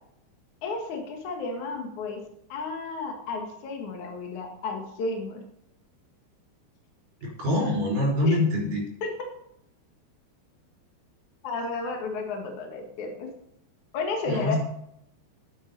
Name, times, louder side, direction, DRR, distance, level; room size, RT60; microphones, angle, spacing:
voice 1, 0.6-2.2 2.5-5.4 8.2-8.4 9.0-9.2 11.4-13.3 13.9-14.6, left 3 dB, 55° left, 2 dB, 2.6 m, -32 dB
voice 2, 7.2-8.8 14.3-14.6, left 1 dB, 50° right, -1 dB, 5.2 m, -25 dB
11.0 x 9.2 x 5.4 m, 0.77 s
omnidirectional pair, 5.0 m